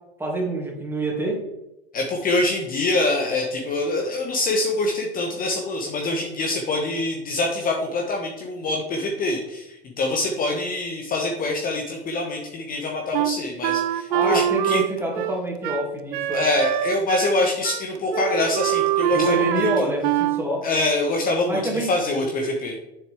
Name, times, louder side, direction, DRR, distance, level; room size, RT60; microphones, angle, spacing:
voice 1, 0.2-1.4 14.1-16.5 19.1-20.6 21.5-21.9, right 1 dB, 5° right, -1 dB, 2.7 m, -26 dB
voice 2, 1.9-14.8 16.3-19.9 20.6-22.8, left 2 dB, 30° left, 1 dB, 1.3 m, -25 dB
Wind instrument woodwind instrument, 13.1-17.4 17.6-17.8 18.1-20.4, right 12 dB, 55° right, 0.6 m, -24 dB
7.8 x 6.8 x 3.5 m, 0.91 s
hypercardioid pair, 100°, 30 cm